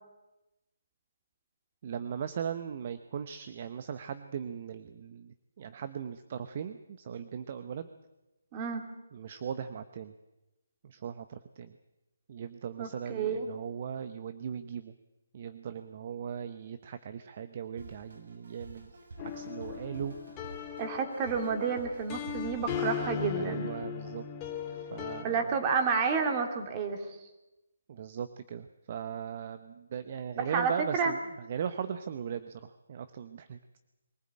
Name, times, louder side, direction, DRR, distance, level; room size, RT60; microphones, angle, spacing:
voice 1, 1.8-7.9 9.1-10.1 10.8-11.8 12.3-14.9 15.3-18.9 19.2-20.1 20.4-20.5 23.3-24.2 24.7-25.5 27.9-31.2 31.5-33.6, right 8 dB, 40° right, 11 dB, 1.0 m, -38 dB
voice 2, 8.5-8.9 12.8-13.5 20.8-23.7 25.2-27.2 30.4-31.1, right 5 dB, 25° right, 5 dB, 2.8 m, -30 dB
Drum kit, 17.8-23.2, right 2 dB, 65° right, 6.9 m, -49 dB
sound 1, 19.2-25.2, left 8 dB, 20° left, 2.1 m, -38 dB
23.0 x 15.0 x 8.9 m, 1.0 s
figure-of-eight pair, 155°, 0 cm